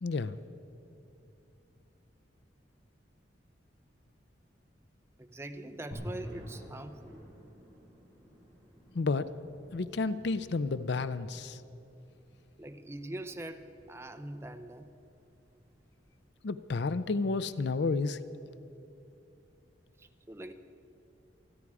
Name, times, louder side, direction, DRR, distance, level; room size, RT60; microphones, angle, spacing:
voice 1, 0.0-0.4 8.9-9.3 9.7-11.6 16.4-18.2, left 3 dB, 65° left, 14 dB, 0.5 m, -31 dB
voice 2, 5.2-7.2 12.6-14.9 20.0-20.5, right 1 dB, 15° right, 8 dB, 0.6 m, -43 dB
sound 1, 5.9-16.2, equal, 10° left, 4.9 m, -50 dB
28.0 x 9.8 x 4.9 m, 2.8 s
head